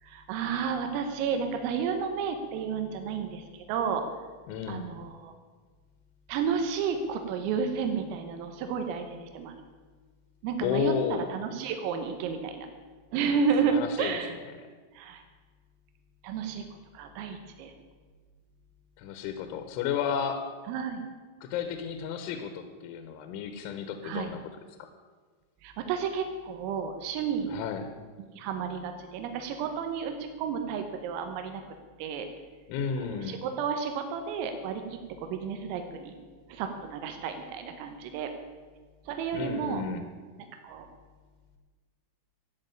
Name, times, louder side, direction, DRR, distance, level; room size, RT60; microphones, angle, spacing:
voice 1, 0.0-4.0 4.7-5.3 6.3-9.5 10.4-12.7 13.1-14.3 14.9-15.2 16.2-16.7 16.9-17.7 20.7-21.0 24.0-24.3 25.6-27.6 28.2-31.6 32.0-32.3 33.0-36.2 36.5-38.3 39.1-39.8 40.4-40.9, right 6 dB, 85° right, 6 dB, 3.8 m, -32 dB
voice 2, 4.5-4.9 10.6-11.3 13.7-14.2 19.0-20.4 21.4-24.4 27.5-27.8 32.7-33.4 39.3-40.0, left 7 dB, 75° left, 7 dB, 3.3 m, -32 dB
13.5 x 8.5 x 9.0 m, 1.4 s
omnidirectional pair, 5.8 m